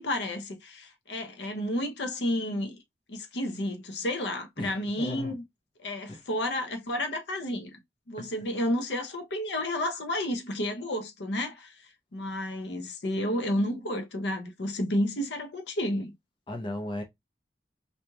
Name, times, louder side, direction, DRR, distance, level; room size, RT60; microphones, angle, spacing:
voice 1, 0.0-2.8 3.1-5.4 5.8-7.8 8.1-11.8 12.1-16.1, left 1 dB, 75° left, 0.8 m, -31 dB
voice 2, 4.6-5.4 6.1-6.2 8.2-8.3 16.5-17.0, left 1 dB, 30° left, 0.8 m, -36 dB
4.0 x 3.1 x 2.3 m
head